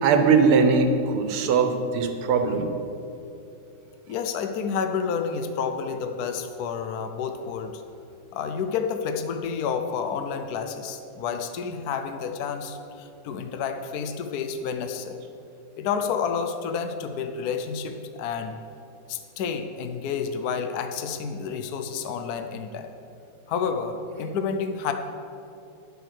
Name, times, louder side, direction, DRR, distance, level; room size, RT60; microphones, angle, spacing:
voice 1, 0.0-2.7, right 5 dB, 75° right, 6 dB, 1.8 m, -20 dB
voice 2, 4.1-7.8 8.3-15.2 15.8-18.6 19.1-22.9 23.5-24.9, left 6 dB, 75° left, 6 dB, 0.8 m, -30 dB
10.0 x 8.0 x 6.5 m, 2.8 s
omnidirectional pair, 2.4 m